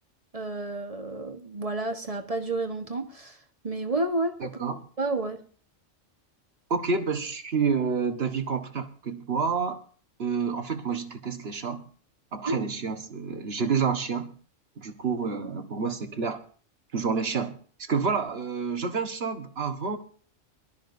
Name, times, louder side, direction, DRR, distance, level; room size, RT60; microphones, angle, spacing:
voice 1, 0.3-3.4 3.6-4.3 5.0-5.4 12.4-12.6, right 2 dB, 30° right, 6 dB, 1.4 m, -30 dB
voice 2, 4.4-4.8 6.7-9.8 10.2-11.8 12.3-14.3 14.8-16.4 16.9-17.5 17.8-20.0, right 5 dB, 55° right, 7 dB, 1.7 m, -29 dB
23.0 x 13.0 x 2.7 m, 0.43 s
omnidirectional pair, 1.3 m